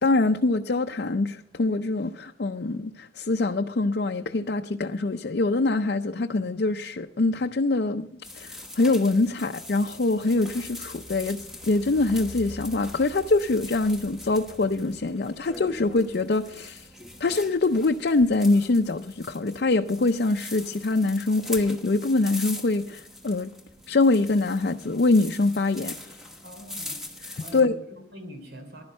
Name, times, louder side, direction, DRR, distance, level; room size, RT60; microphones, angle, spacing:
voice 1, 0.0-8.1 8.3-16.9 17.2-23.5 23.9-25.9 27.5-27.8, left 2 dB, 60° left, 0.5 m, -24 dB
sound 1, 8.2-27.6, left 1 dB, ahead, 1.2 m, -42 dB
voice 2, 26.4-27.0 27.4-28.8, equal, 70° right, 3.2 m, -44 dB
15.5 x 11.5 x 5.4 m
head